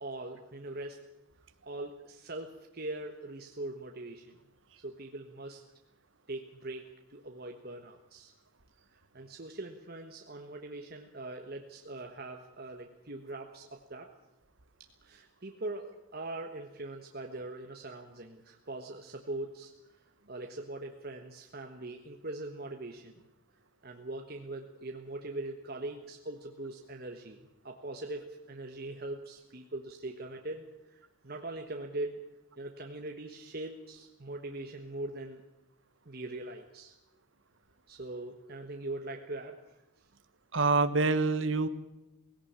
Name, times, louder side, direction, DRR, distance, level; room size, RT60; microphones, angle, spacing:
voice 1, 0.0-1.0 1.6-4.4 4.8-5.6 6.3-8.3 8.9-14.1 15.0-19.7 20.3-23.3 23.8-32.2 32.6-35.4 36.0-37.0 37.9-39.6, right 2 dB, 45° right, 4 dB, 1.4 m, -41 dB
voice 2, 40.5-41.7, right 3 dB, 60° right, 11 dB, 1.3 m, -26 dB
17.5 x 17.5 x 8.8 m, 0.94 s
head